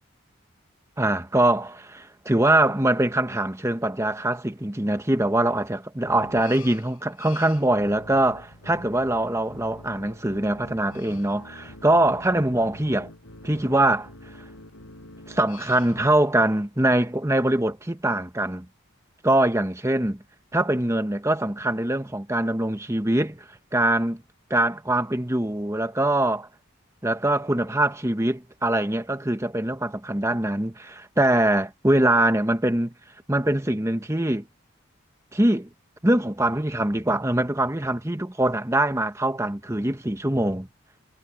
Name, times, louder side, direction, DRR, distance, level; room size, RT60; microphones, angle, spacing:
voice 1, 1.0-13.1 13.4-14.1 15.3-18.7 19.2-20.2 20.5-23.4 23.7-24.2 24.5-26.5 27.0-32.9 33.3-34.5 35.3-35.7 36.0-40.7, right 1 dB, 15° right, 1.1 m, -23 dB
sound 1, 6.0-16.1, left 2 dB, 85° left, 5.6 m, -46 dB
head